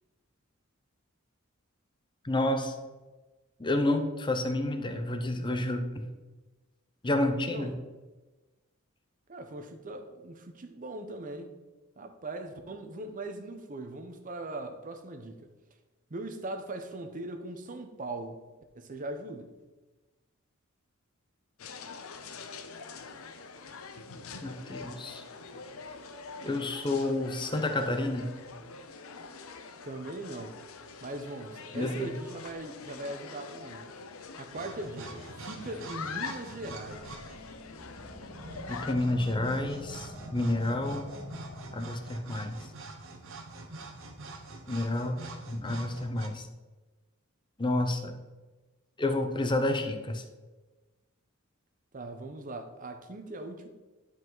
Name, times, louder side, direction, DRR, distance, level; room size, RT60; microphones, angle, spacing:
voice 1, 2.2-2.7 3.6-6.1 7.0-7.7 24.4-25.2 26.4-28.3 31.7-32.1 38.7-41.1 41.7-42.6 44.7-45.2 45.5-46.5 47.6-48.1 49.0-50.2, left 1 dB, 20° left, 7 dB, 0.7 m, -29 dB
voice 2, 7.5-7.8 9.3-11.5 12.0-15.4 16.1-18.4 18.7-19.5 29.8-30.5 31.0-33.9 34.4-37.1 51.9-53.7, right 2 dB, 40° right, 7 dB, 0.8 m, -40 dB
sound 1, 21.6-39.0, left 5 dB, 75° left, 0.7 m, -44 dB
sound 2, 34.5-46.3, right 2 dB, 65° right, 1.0 m, -45 dB
sound 3, 36.8-42.2, left 1 dB, 55° left, 1.3 m, -46 dB
10.0 x 4.8 x 4.0 m, 1.2 s
head